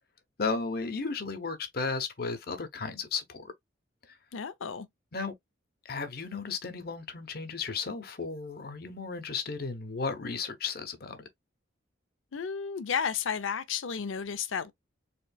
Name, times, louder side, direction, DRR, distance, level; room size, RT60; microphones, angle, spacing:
voice 1, 0.4-3.5 4.1-4.2 5.1-5.3 5.8-11.2, left 4 dB, 50° left, 0.7 m, -34 dB
voice 2, 4.3-4.9 12.3-14.7, left 6 dB, 85° left, 0.6 m, -32 dB
4.4 x 3.1 x 2.2 m
head